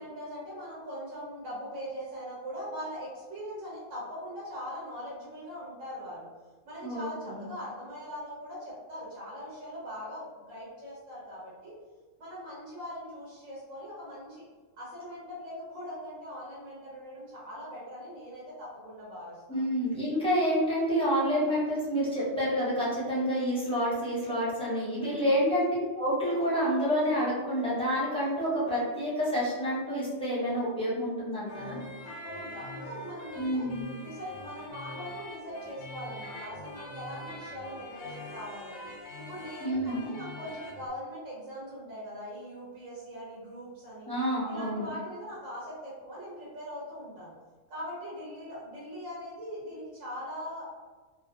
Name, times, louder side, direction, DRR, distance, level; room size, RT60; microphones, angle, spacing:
voice 1, 0.0-6.3 6.6-11.8 12.2-14.5 14.8-19.7 25.0-25.4 32.0-33.7 34.0-38.8 39.1-44.1 44.5-47.3 47.7-50.6, equal, 75° right, -7 dB, 1.2 m, -41 dB
voice 2, 6.8-7.5 19.5-25.7 25.9-31.8 33.4-33.9 39.6-40.1 44.1-44.9, equal, 5° left, -9 dB, 0.6 m, -28 dB
sound 1, 31.5-40.9, left 1 dB, 65° left, 0.9 m, -44 dB
2.6 x 2.1 x 2.6 m, 1.3 s
omnidirectional pair, 1.3 m